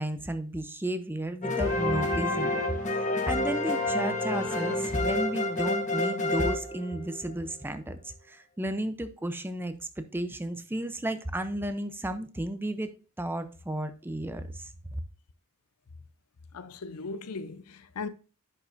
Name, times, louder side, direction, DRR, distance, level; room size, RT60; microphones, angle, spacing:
voice 1, 0.0-12.9 13.2-15.0, right 1 dB, 10° right, 0.5 m, -33 dB
sound 1, 1.4-7.3, left 2 dB, 35° left, 1.2 m, -28 dB
voice 2, 16.5-18.1, left 4 dB, 80° left, 0.6 m, -38 dB
10.5 x 5.6 x 2.5 m
head